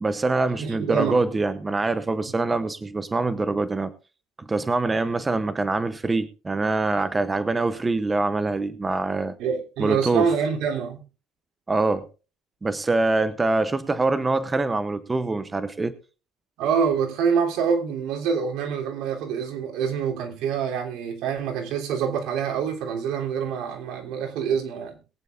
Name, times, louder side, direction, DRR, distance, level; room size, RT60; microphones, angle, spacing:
voice 1, 0.0-3.9 4.4-9.3 9.8-10.3 11.7-12.1 12.6-15.9, right 3 dB, 15° right, 0.7 m, -24 dB
voice 2, 0.5-1.2 9.4-11.0 16.6-25.0, right 6 dB, 75° right, 3.2 m, -26 dB
21.5 x 9.0 x 2.5 m
cardioid pair, 145°, 0 cm